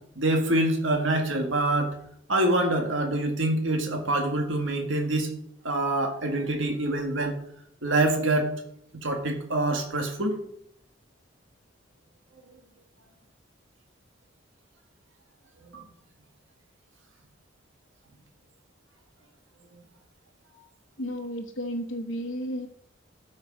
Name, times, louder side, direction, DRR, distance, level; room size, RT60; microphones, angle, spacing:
voice 1, 0.2-2.0 2.3-5.3 5.6-7.4 7.8-8.5 9.0-10.4 15.7-15.8, right 1 dB, 80° right, 3 dB, 1.8 m, -25 dB
voice 2, 21.0-22.7, equal, 70° left, -1 dB, 1.1 m, -33 dB
13.0 x 6.4 x 5.3 m, 0.70 s
head